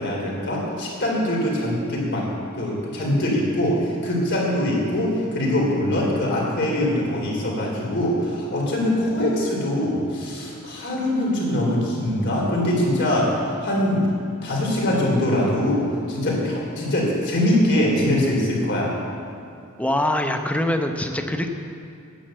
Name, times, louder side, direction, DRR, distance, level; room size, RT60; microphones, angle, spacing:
voice 1, 0.0-2.3 2.5-14.0 14.4-18.9, left 1 dB, 55° left, -3 dB, 3.5 m, -23 dB
voice 2, 19.8-21.5, left 1 dB, 5° left, 5 dB, 0.8 m, -23 dB
10.5 x 9.8 x 7.6 m, 2.5 s
head